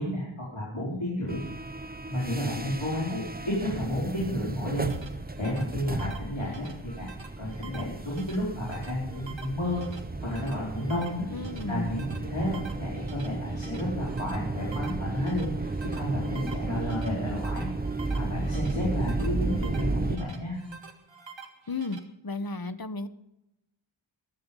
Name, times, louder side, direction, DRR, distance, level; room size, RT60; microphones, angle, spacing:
voice 1, 0.0-1.4 2.1-4.9 5.4-7.1 7.4-9.8 10.2-11.2 11.7-17.7 18.1-20.6, left 1 dB, 85° left, -7 dB, 4.7 m, -31 dB
sound 1, 1.3-20.2, right 2 dB, 20° right, 0.8 m, -34 dB
sound 2, 4.5-22.0, right 5 dB, 65° right, 1.9 m, -48 dB
voice 2, 11.3-11.9 21.7-22.0 22.2-23.1, left 3 dB, 45° left, 13 dB, 1.0 m, -33 dB
22.0 x 7.8 x 5.4 m, 0.87 s
wide cardioid pair, 45°, 49 cm